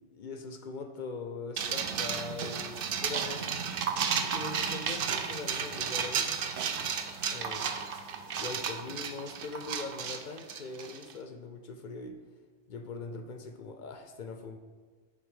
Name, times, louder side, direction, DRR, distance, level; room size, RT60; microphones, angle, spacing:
voice 1, 0.1-3.5 4.2-6.3 7.3-7.7 8.4-12.2 12.7-14.6, left 4 dB, 55° left, 6 dB, 0.5 m, -41 dB
sound 1, 1.6-11.1, right 6 dB, 60° right, 0.6 m, -33 dB
6.0 x 4.0 x 5.3 m, 1.5 s
omnidirectional pair, 1.2 m